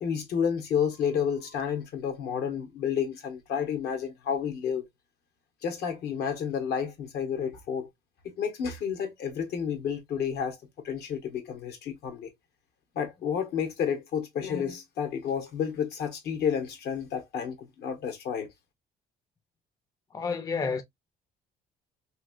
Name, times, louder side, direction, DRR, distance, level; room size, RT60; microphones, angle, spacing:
voice 1, 0.0-4.8 5.6-7.9 8.2-10.6 10.8-12.3 12.9-18.5, left 7 dB, 75° left, 1.1 m, -30 dB
voice 2, 20.1-20.8, left 5 dB, 20° left, 0.5 m, -30 dB
3.1 x 2.8 x 2.4 m
cardioid pair, 110°, 17 cm